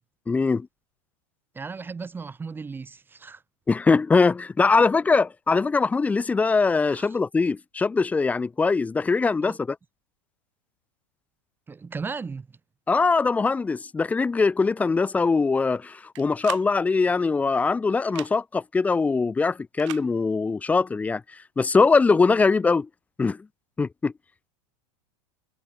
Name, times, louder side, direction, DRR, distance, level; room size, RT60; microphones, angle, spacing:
voice 1, 0.3-0.7 3.7-9.8 12.9-21.2 21.6-22.9 23.2-23.4 23.8-24.1, left 4 dB, 10° left, 0.6 m, -22 dB
voice 2, 1.5-3.4 6.9-7.1 9.4-9.6 11.7-12.6, right 4 dB, 10° right, 2.0 m, -36 dB
sound 1, 16.1-16.7 18.0-18.3 19.8-20.1, right 20 dB, 65° right, 2.8 m, -38 dB
supercardioid pair, 150°, 17 cm